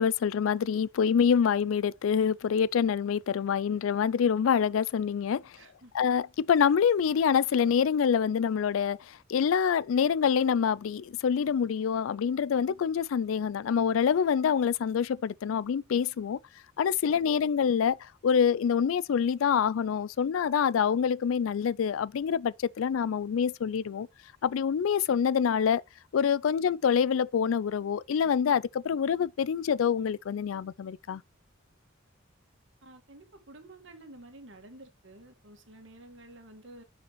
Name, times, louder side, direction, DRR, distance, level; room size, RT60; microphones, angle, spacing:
voice 1, 0.0-5.5 5.9-16.4 16.8-24.1 24.4-25.8 26.1-31.2, left 7 dB, 85° left, 0.4 m, -26 dB
voice 2, 5.5-5.9 17.1-17.4 32.8-36.8, right 1 dB, 65° right, 1.9 m, -51 dB
10.5 x 5.2 x 3.0 m
head